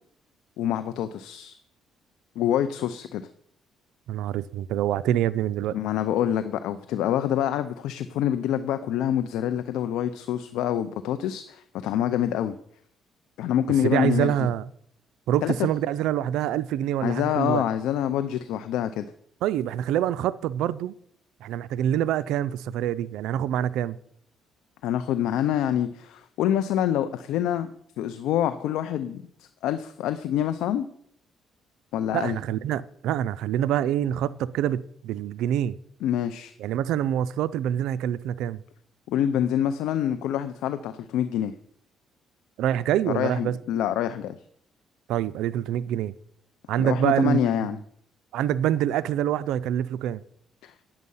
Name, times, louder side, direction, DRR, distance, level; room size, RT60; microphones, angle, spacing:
voice 1, 0.6-1.6 2.4-3.2 5.7-12.6 13.4-14.5 15.4-15.5 17.0-19.1 24.8-27.7 28.0-30.9 31.9-32.4 36.0-36.5 39.1-41.5 43.1-44.4 46.8-47.8 50.6-50.7, left 10 dB, 85° left, 0.5 m, -26 dB
voice 2, 4.1-5.8 13.8-14.7 15.3-17.6 19.4-20.9 21.4-24.0 32.1-35.8 36.6-38.6 42.6-43.6 45.1-46.1 46.7-47.7 48.3-50.2, right 11 dB, 85° right, 0.4 m, -26 dB
9.6 x 7.4 x 5.5 m
cardioid pair, 100°, 0 cm